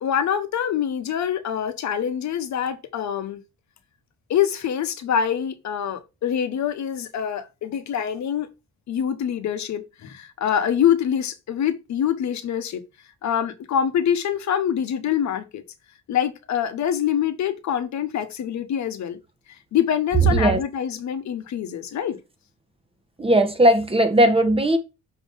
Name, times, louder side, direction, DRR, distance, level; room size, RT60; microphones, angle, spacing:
voice 1, 0.0-3.4 4.3-8.5 8.9-12.8 13.2-15.6 16.1-19.2 19.5-22.2, left 9 dB, 65° left, 1.1 m, -25 dB
voice 2, 20.3-20.6 23.2-24.8, right 1 dB, 20° right, 1.3 m, -18 dB
6.3 x 3.1 x 5.4 m
cardioid pair, 90°, 30 cm